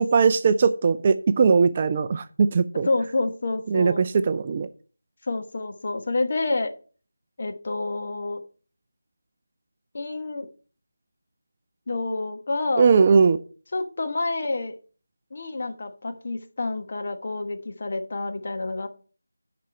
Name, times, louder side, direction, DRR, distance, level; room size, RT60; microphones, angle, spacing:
voice 1, 0.0-2.9 3.7-4.7 12.8-13.4, right 5 dB, 25° right, 10 dB, 0.4 m, -19 dB
voice 2, 2.8-4.0 5.2-6.7 7.4-8.4 9.9-10.5 11.9-12.9 13.7-14.7 15.3-18.9, left 2 dB, 40° left, 6 dB, 1.2 m, -28 dB
7.5 x 6.0 x 6.6 m, 0.39 s
figure-of-eight pair, 165°, 0 cm